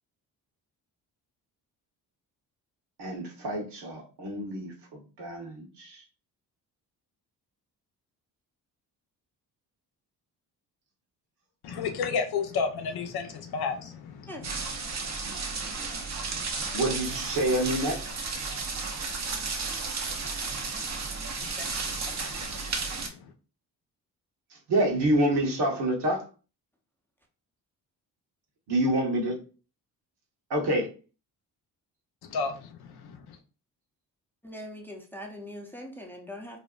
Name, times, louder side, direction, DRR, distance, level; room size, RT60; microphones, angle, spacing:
voice 1, 3.0-6.0 16.7-18.0 24.7-26.2 28.7-29.4 30.5-30.9, right 1 dB, 60° right, 0 dB, 1.1 m, -27 dB
voice 2, 11.6-14.7 21.4-23.3 32.3-33.4, left 5 dB, 55° left, 6 dB, 0.5 m, -33 dB
sound 1, 14.4-23.1, right 4 dB, 40° right, 0.6 m, -33 dB
voice 3, 34.4-36.6, left 1 dB, 5° left, 0 dB, 0.6 m, -41 dB
2.6 x 2.0 x 2.3 m, 0.36 s
hypercardioid pair, 50°, 45 cm